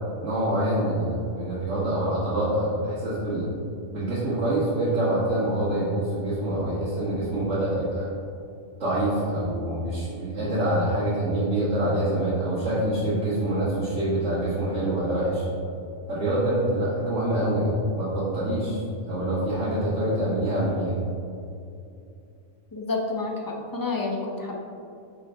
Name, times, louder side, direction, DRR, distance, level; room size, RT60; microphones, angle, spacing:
voice 1, 0.2-3.5 3.9-8.1 8.8-15.4 16.1-18.8 19.1-20.9, right 1 dB, 65° right, -11 dB, 1.9 m, -25 dB
voice 2, 22.7-24.6, left 3 dB, 30° left, 0 dB, 0.4 m, -29 dB
5.8 x 5.7 x 3.4 m, 2.6 s
omnidirectional pair, 1.3 m